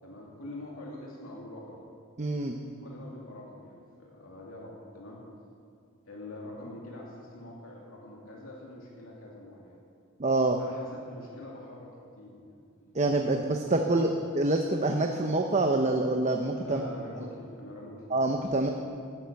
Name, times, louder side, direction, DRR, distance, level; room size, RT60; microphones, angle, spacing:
voice 1, 0.0-1.8 2.8-5.2 6.0-9.8 10.6-11.9 12.2-12.5 12.8-13.0 13.9-14.0 16.6-18.1, left 1 dB, 70° left, -3 dB, 2.8 m, -45 dB
voice 2, 2.2-2.6 10.2-10.6 12.9-16.8 18.1-18.7, right 2 dB, 35° right, 3 dB, 0.8 m, -26 dB
18.0 x 10.0 x 7.0 m, 2.4 s
head